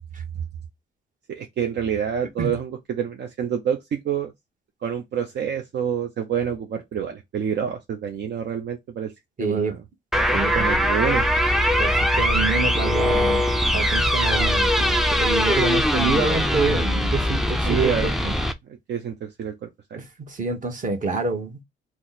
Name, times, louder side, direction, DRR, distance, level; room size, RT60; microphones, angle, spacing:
voice 1, 1.3-4.3 4.8-9.1 9.4-9.8 10.3-11.3 17.7-18.1 18.7-20.0, right 8 dB, 60° right, 0.6 m, -27 dB
voice 2, 9.4-9.7 10.3-10.7 11.8-17.9 18.2-18.4 20.0-21.6, right 3 dB, 40° right, 1.1 m, -27 dB
sound 1, 10.1-18.5, equal, ahead, 0.4 m, -21 dB
2.9 x 2.1 x 3.9 m
cardioid pair, 90°, 20 cm